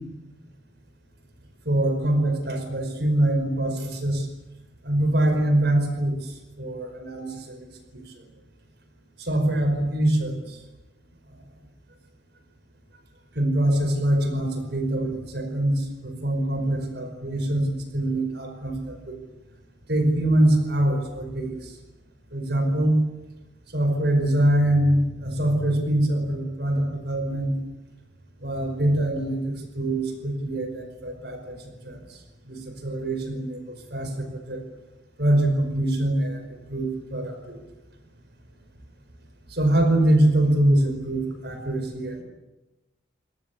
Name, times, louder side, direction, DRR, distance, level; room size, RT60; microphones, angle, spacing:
voice 1, 1.6-4.3 4.8-7.7 7.9-8.0 9.2-10.6 13.3-17.7 17.9-19.2 19.9-21.7 22.3-23.0 23.7-27.5 28.4-31.6 31.8-32.2 32.4-34.6 35.2-37.6 39.5-42.2, right 1 dB, 55° right, 6 dB, 5.2 m, -24 dB
26.5 x 19.0 x 8.4 m, 1.0 s
head